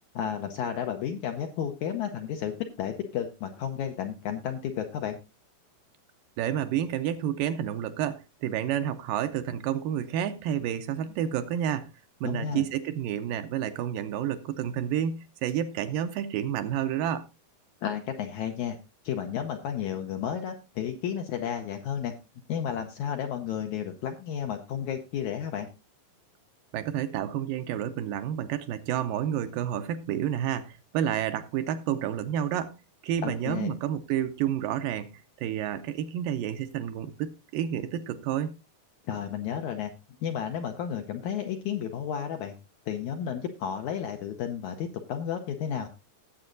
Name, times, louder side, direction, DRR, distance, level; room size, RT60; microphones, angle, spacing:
voice 1, 0.2-5.2 12.2-12.7 17.8-18.8 19.0-22.1 22.5-25.7 33.2-33.7 39.1-39.9 40.2-42.5 42.9-45.9, left 8 dB, 75° left, 1.8 m, -32 dB
voice 2, 6.4-11.9 12.2-17.3 26.7-32.8 33.0-35.1 35.4-38.6, right 10 dB, 80° right, 2.3 m, -30 dB
17.5 x 7.9 x 2.6 m
omnidirectional pair, 4.2 m